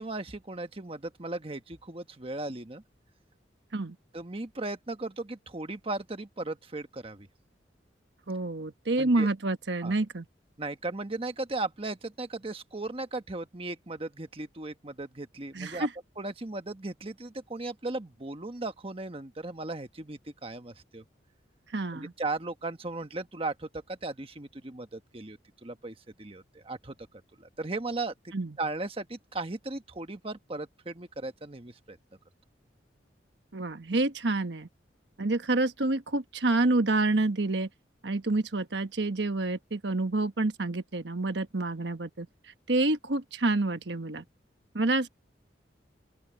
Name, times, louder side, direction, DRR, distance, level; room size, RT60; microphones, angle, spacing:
voice 1, 0.0-2.8 4.1-7.3 9.0-9.3 9.8-9.9 10.6-15.9 16.2-21.0 21.9-26.9 27.4-32.0, right 2 dB, 30° right, 1.2 m, -37 dB
voice 2, 8.3-10.2 15.5-15.9 21.7-22.1 28.3-28.6 33.5-34.7 35.2-37.7 38.0-42.3 42.7-44.2 44.7-45.1, right 2 dB, 75° right, 1.2 m, -28 dB
open air
head